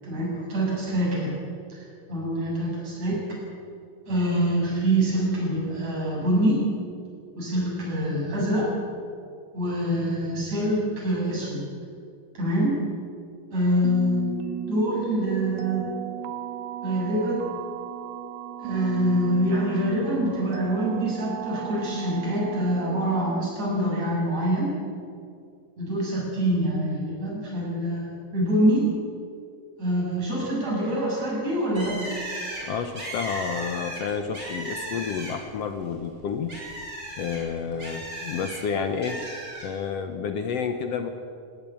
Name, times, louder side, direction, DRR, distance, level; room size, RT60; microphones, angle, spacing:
voice 1, 0.0-1.3 1.7-3.4 4.1-6.6 7.4-8.7 9.5-11.7 12.3-12.9 13.5-15.9 16.8-17.4 18.6-24.7 25.8-28.9 29.8-32.1, equal, 55° right, -5 dB, 8.6 m, -25 dB
sound 1, 13.8-23.5, right 9 dB, 75° right, 2.4 m, -35 dB
Bird, 31.7-35.6 35.9-38.6 39.0-39.7, right 1 dB, 25° right, 6.4 m, -36 dB
voice 2, 32.6-36.6 37.2-39.2 39.6-41.1, left 6 dB, 65° left, 8 dB, 1.6 m, -30 dB
18.0 x 18.0 x 8.7 m, 2.4 s
omnidirectional pair, 3.8 m